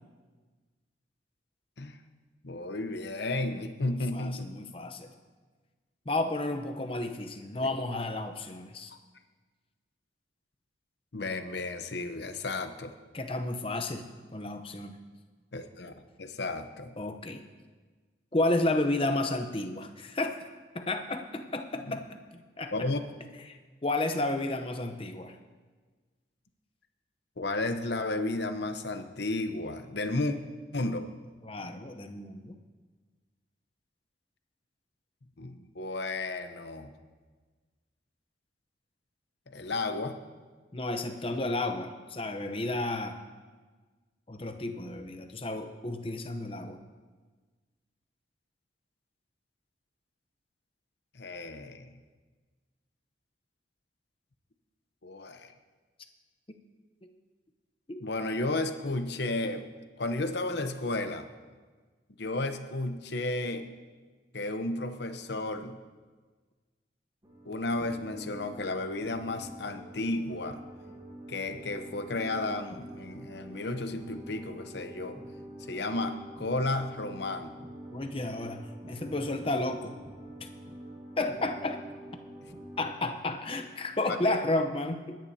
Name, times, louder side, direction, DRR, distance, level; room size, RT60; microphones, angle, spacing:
voice 1, 2.4-4.7 11.1-12.9 15.5-16.9 21.9-22.0 22.7-23.0 27.4-30.4 30.7-31.1 35.4-36.9 39.5-40.2 51.1-51.9 55.0-55.5 58.0-59.6 60.0-61.3 62.2-63.7 64.3-65.8 67.4-70.6 71.3-75.2 75.7-77.5 84.1-84.4, left 2 dB, 60° left, 8 dB, 0.8 m, -33 dB
voice 2, 3.9-5.1 6.1-8.9 13.1-14.1 14.3-14.9 17.0-17.4 18.3-20.4 20.7-22.2 22.6-22.7 23.5-25.3 31.4-32.6 40.7-43.2 44.3-46.8 57.9-58.0 77.9-80.0 81.2-81.8 82.8-85.2, left 2 dB, 30° left, 6 dB, 0.8 m, -32 dB
sound 1, 67.2-82.9, right 1 dB, 20° right, 1.2 m, -46 dB
23.0 x 10.5 x 2.8 m, 1.4 s
head